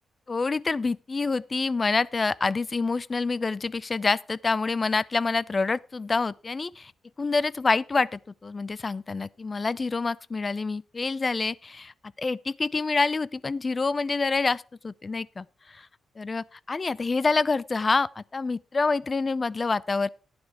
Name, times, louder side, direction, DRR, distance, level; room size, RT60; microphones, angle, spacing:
voice 1, 0.3-6.9 7.2-11.9 12.2-15.4 15.7-15.9 16.2-20.1, left 4 dB, 35° left, 0.5 m, -27 dB
11.5 x 9.7 x 4.7 m
cardioid pair, 75°, 0 cm